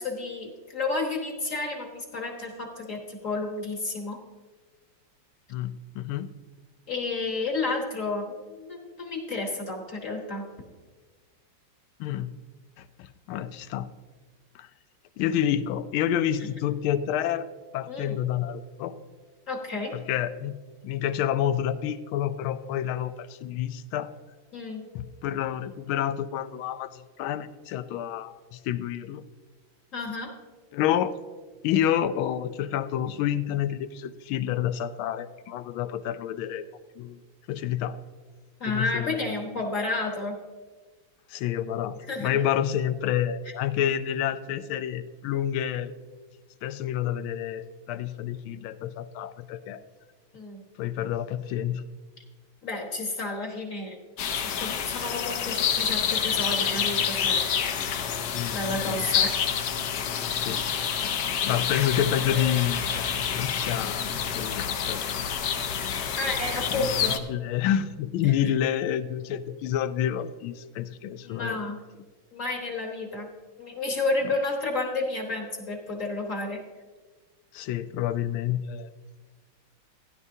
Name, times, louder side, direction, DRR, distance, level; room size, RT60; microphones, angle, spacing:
voice 1, 0.0-4.2 6.9-10.5 17.9-18.1 19.5-19.9 24.5-24.9 29.9-30.3 38.6-40.4 42.1-42.4 50.3-50.6 52.6-54.0 54.4-57.4 58.5-59.4 62.3-62.6 66.2-67.2 68.2-68.5 71.2-71.8 72.3-73.3 73.6-76.6, left 3 dB, 45° left, 1 dB, 1.4 m, -31 dB
voice 2, 5.5-6.3 12.0-12.3 12.8-13.9 14.5-14.7 15.2-17.5 17.7-18.9 19.9-20.5 20.8-24.1 24.9-29.2 30.7-31.1 31.6-36.7 37.0-37.2 37.5-38.0 38.7-39.3 41.3-45.9 46.6-49.8 50.8-51.8 58.3-59.1 60.4-60.7 61.4-65.0 66.7-66.9 67.3-71.7 77.5-78.9, left 10 dB, 85° left, 13 dB, 1.4 m, -29 dB
sound 1, 54.2-67.2, left 8 dB, 65° left, 1.1 m, -28 dB
15.5 x 10.5 x 2.7 m, 1.4 s
omnidirectional pair, 2.2 m